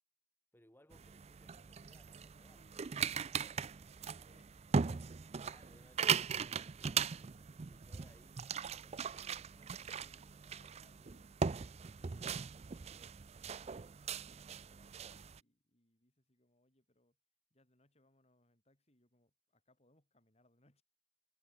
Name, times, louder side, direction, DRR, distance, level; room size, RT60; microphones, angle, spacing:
voice 1, 0.5-2.6 5.4-9.9, left 1 dB, 10° left, 3.8 m, -67 dB
sound 1, 0.9-15.4, right 6 dB, 35° right, 0.5 m, -39 dB
voice 2, 2.5-4.9 10.0-17.2 17.5-20.8, left 1 dB, 35° left, 7.4 m, -73 dB
head